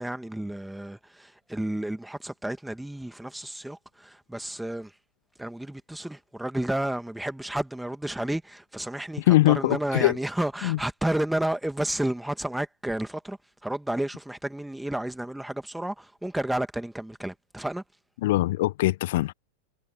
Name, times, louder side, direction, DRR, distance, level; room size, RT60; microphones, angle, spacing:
voice 1, 0.0-5.0 5.4-17.8, right 1 dB, 5° right, 2.3 m, -31 dB
voice 2, 9.3-10.2 10.6-10.8 18.2-19.3, left 17 dB, 55° left, 0.9 m, -22 dB
figure-of-eight pair, 90°, 0 cm